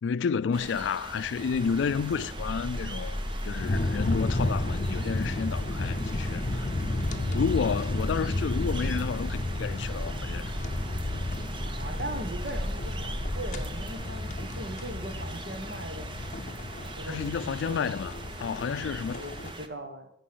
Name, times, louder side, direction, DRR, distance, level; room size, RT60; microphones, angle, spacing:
voice 1, 0.0-6.7 7.3-10.5 17.0-18.1 18.4-19.2, left 6 dB, 85° left, 0.3 m, -31 dB
sound 1, 0.5-19.7, right 3 dB, 25° right, 0.6 m, -42 dB
sound 2, 1.5-19.5, left 2 dB, 40° left, 0.6 m, -33 dB
sound 3, 2.4-13.9, left 1 dB, 25° left, 1.1 m, -37 dB
voice 2, 7.0-7.5 11.6-16.3 16.9-17.9 19.1-20.1, right 1 dB, 60° right, 1.4 m, -40 dB
10.0 x 5.3 x 7.8 m
head